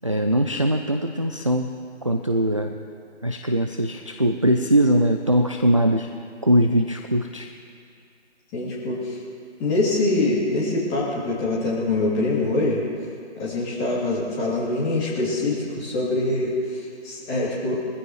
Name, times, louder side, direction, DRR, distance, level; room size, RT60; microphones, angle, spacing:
voice 1, 0.0-1.7 2.0-2.8 3.2-6.1 6.4-7.5, equal, 30° right, 5 dB, 0.4 m, -21 dB
voice 2, 8.5-9.2 9.6-12.8 13.4-17.8, left 2 dB, 15° left, -7 dB, 2.9 m, -24 dB
23.0 x 15.0 x 3.2 m, 2.3 s
figure-of-eight pair, 150°, 34 cm